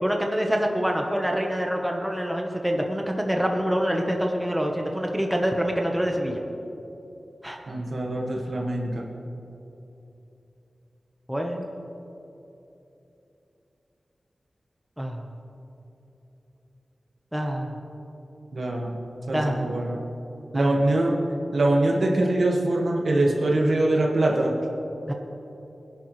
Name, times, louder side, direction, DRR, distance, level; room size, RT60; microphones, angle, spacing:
voice 1, 0.0-6.4 7.4-7.6 11.3-11.6 15.0-15.2 17.3-17.7 19.3-19.6 20.5-20.8 25.1-25.2, equal, 5° right, 1 dB, 1.2 m, -26 dB
voice 2, 7.7-9.1 18.5-19.0 19.3-20.0 20.5-21.1 21.5-24.5, right 2 dB, 70° right, -1 dB, 1.8 m, -23 dB
21.5 x 11.0 x 3.3 m, 2.9 s
wide cardioid pair, 90°, 0 cm